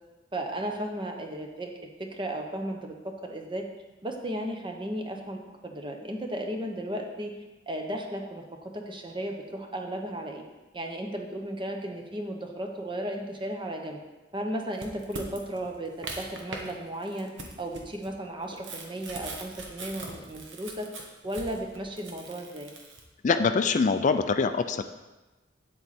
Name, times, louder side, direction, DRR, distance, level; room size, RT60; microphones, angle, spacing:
voice 1, 0.3-1.7 2.0-3.7 4.0-7.4 7.7-10.4 10.7-14.0 14.3-20.9 21.2-22.7, right 1 dB, 25° right, 3 dB, 1.0 m, -35 dB
sound 1, 14.7-16.7 17.0-23.0, right 3 dB, 85° right, 1.4 m, -41 dB
voice 2, 23.2-24.8, left 4 dB, 40° left, 9 dB, 0.4 m, -24 dB
8.4 x 7.9 x 4.3 m, 1.1 s
head